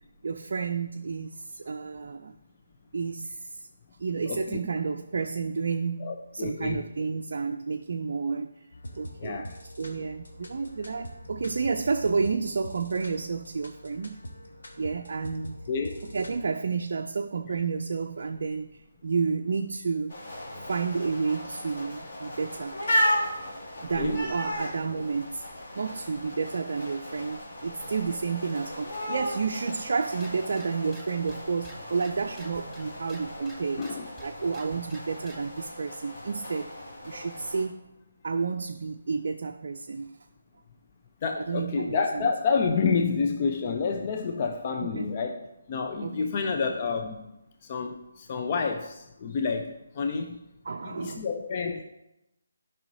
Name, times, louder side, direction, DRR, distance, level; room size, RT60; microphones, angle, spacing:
voice 1, 0.2-2.3 2.9-3.7 4.0-8.6 8.9-9.5 9.8-14.2 14.8-15.6 16.1-20.1 20.6-22.8 23.8-25.5 25.7-33.9 34.2-36.7 37.0-37.8 38.2-40.3 41.5-42.3 44.8-45.1 46.0-46.3 50.6-51.3, right 5 dB, 55° right, 5 dB, 0.4 m, -31 dB
voice 2, 4.3-4.6 6.0-6.8 9.2-9.6 15.7-16.1 24.0-24.2 33.8-34.1 41.2-47.3 47.6-50.4 50.8-51.8, left 5 dB, 35° left, 4 dB, 0.5 m, -29 dB
sound 1, 8.7-16.5, equal, 75° left, 1.4 m, -44 dB
sound 2, 20.1-37.7, equal, 55° left, 2.4 m, -35 dB
sound 3, 30.1-35.5, equal, ahead, 0.9 m, -51 dB
11.5 x 5.5 x 2.7 m, 0.92 s
figure-of-eight pair, 150°, 0 cm